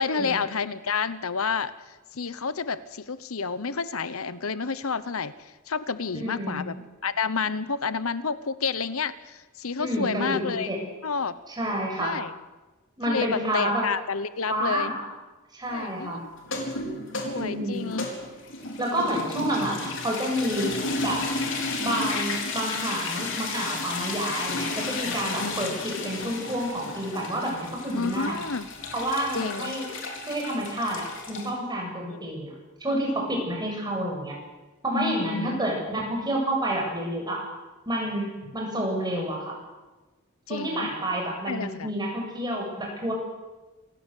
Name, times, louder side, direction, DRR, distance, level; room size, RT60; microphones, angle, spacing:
voice 1, 0.0-1.7 2.1-6.7 7.0-10.7 11.0-11.4 12.0-12.3 13.1-14.9 15.7-16.3 17.2-18.1 25.0-25.8 27.9-28.7 29.3-29.7 32.1-32.3 35.0-35.6 39.1-39.3 40.5-40.9 41.5-41.9, left 5 dB, 85° left, 15 dB, 1.0 m, -30 dB
voice 2, 6.1-6.7 9.8-10.8 11.5-12.1 13.0-13.9 14.5-15.0 15.5-16.2 17.3-17.9 18.8-20.7 21.0-21.3 21.8-28.4 28.9-29.9 30.3-32.5 32.8-34.4 34.8-37.5 37.9-39.6 40.5-43.1, right 1 dB, 20° right, 0 dB, 7.9 m, -29 dB
sound 1, 16.4-31.5, left 3 dB, 65° left, 4.2 m, -33 dB
27.0 x 16.5 x 8.4 m, 1.2 s
head